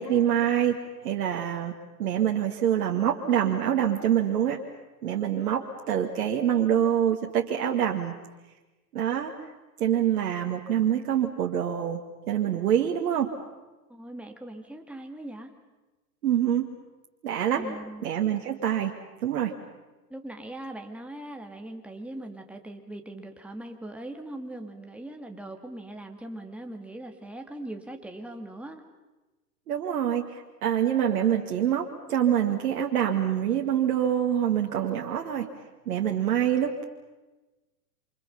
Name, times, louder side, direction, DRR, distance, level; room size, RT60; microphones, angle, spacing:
voice 1, 0.0-1.7 2.0-4.6 5.0-8.1 8.9-9.3 9.8-12.0 12.3-13.3 16.2-16.7 17.2-17.6 18.0-18.9 19.2-19.5 29.7-35.5 35.9-36.9, right 10 dB, 65° right, 2 dB, 2.2 m, -25 dB
voice 2, 10.4-11.0 13.9-15.5 17.5-18.1 20.1-28.9, right 1 dB, 5° right, 3 dB, 2.4 m, -40 dB
28.5 x 26.5 x 5.6 m, 1.2 s
hypercardioid pair, 110°, 47 cm